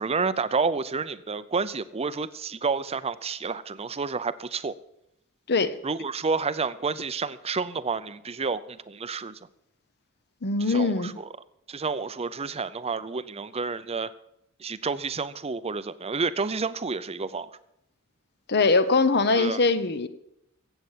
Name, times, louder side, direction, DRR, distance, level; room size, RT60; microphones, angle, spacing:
voice 1, 0.0-4.8 5.8-9.4 10.6-11.3 11.7-14.1 14.6-17.5 19.3-19.6, right 4 dB, 30° right, 0.6 m, -30 dB
voice 2, 5.5-5.8 10.4-11.2 18.5-20.1, left 3 dB, 50° left, 0.9 m, -22 dB
16.0 x 8.1 x 7.4 m
head